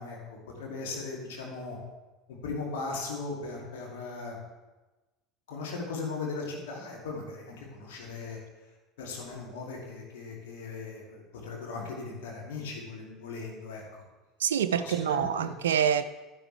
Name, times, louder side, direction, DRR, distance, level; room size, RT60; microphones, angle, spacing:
voice 1, 0.0-1.8 2.3-4.4 5.5-8.4 9.0-14.0 14.7-15.3, left 3 dB, 65° left, -1 dB, 2.5 m, -38 dB
voice 2, 14.4-16.0, right 8 dB, 70° right, 11 dB, 0.3 m, -26 dB
11.0 x 10.5 x 3.4 m, 1.1 s
figure-of-eight pair, 70°, 0 cm